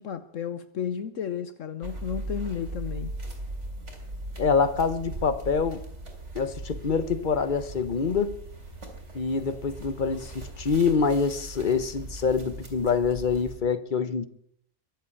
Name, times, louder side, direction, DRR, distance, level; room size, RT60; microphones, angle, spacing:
voice 1, 0.0-3.1, left 8 dB, 65° left, 1.2 m, -33 dB
sound 1, 1.8-13.6, right 2 dB, 55° right, 3.7 m, -39 dB
voice 2, 4.4-5.8 6.3-8.4 9.1-14.3, left 5 dB, 40° left, 1.1 m, -25 dB
22.5 x 8.1 x 7.1 m
omnidirectional pair, 1.5 m